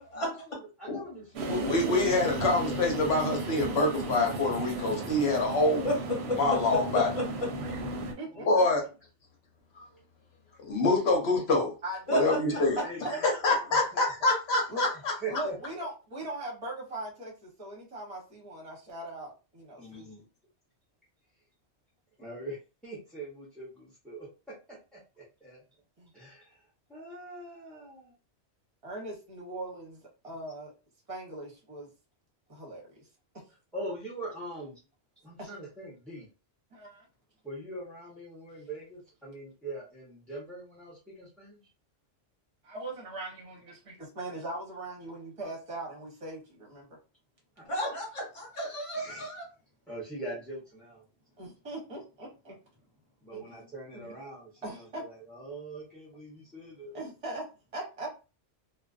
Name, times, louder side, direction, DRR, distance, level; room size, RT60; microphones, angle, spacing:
voice 1, 0.2-2.1 8.3-8.7 12.4-14.3 15.2-15.6 19.8-20.2 22.2-22.6 22.8-24.3 24.9-25.6 26.1-26.6 26.9-28.1 33.7-34.8 35.2-36.3 37.4-41.6 47.6-47.7 48.9-49.3 49.9-51.0 53.2-57.0, right 2 dB, ahead, 0.6 m, -42 dB
sound 1, 1.3-8.1, right 2 dB, 65° right, 0.8 m, -35 dB
voice 2, 1.5-5.9 6.4-7.1 8.5-8.8 10.7-11.7 12.1-12.8 13.4-15.1, left 2 dB, 65° left, 0.9 m, -26 dB
voice 3, 5.8-6.6 6.9-7.2 12.1-12.4 14.3-14.4 47.6-49.5, equal, 30° left, 0.9 m, -32 dB
voice 4, 7.7-8.7 11.8-12.3 13.0-13.2 14.7-14.9 15.3-20.1 26.0-26.1 28.8-30.7 31.1-31.9 32.5-33.1 35.4-35.5 36.7-37.0 42.6-46.9 51.4-52.5 53.3-53.6 53.9-54.1 54.6-55.0 56.9-57.4 57.7-58.1, right 2 dB, 30° right, 0.9 m, -40 dB
2.4 x 2.2 x 2.4 m
omnidirectional pair, 1.2 m